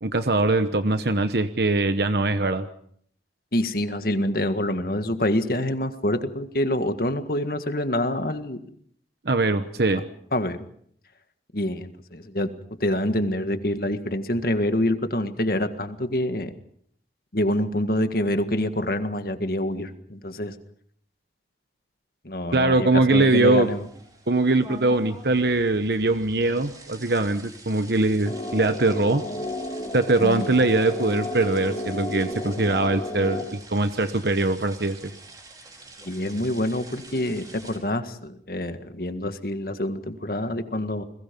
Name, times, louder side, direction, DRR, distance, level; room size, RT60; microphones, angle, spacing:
voice 1, 0.0-2.7 9.2-10.0 22.5-23.7 24.3-29.2 29.9-35.1, right 2 dB, 65° right, 9 dB, 1.1 m, -22 dB
voice 2, 3.5-8.6 10.3-10.7 11.5-12.5 12.8-16.5 17.3-20.6 22.2-23.9 30.2-30.6 36.0-41.0, left 1 dB, 55° left, 8 dB, 1.8 m, -26 dB
sound 1, 23.1-37.8, right 2 dB, 20° right, 5.0 m, -47 dB
sound 2, 28.3-33.4, left 1 dB, 30° left, 3.4 m, -32 dB
30.0 x 21.5 x 5.3 m, 0.65 s
head